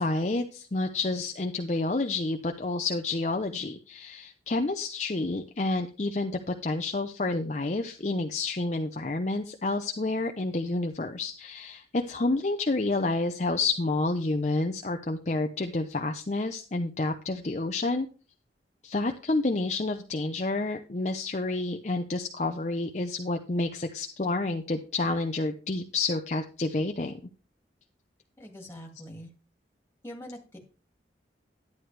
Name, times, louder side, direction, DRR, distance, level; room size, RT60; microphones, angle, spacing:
voice 1, 0.0-18.1 18.8-27.1, left 2 dB, 40° left, 4 dB, 0.7 m, -29 dB
voice 2, 28.4-29.3 30.0-30.6, equal, 15° left, 1 dB, 2.2 m, -43 dB
11.0 x 9.4 x 3.3 m, 0.36 s
head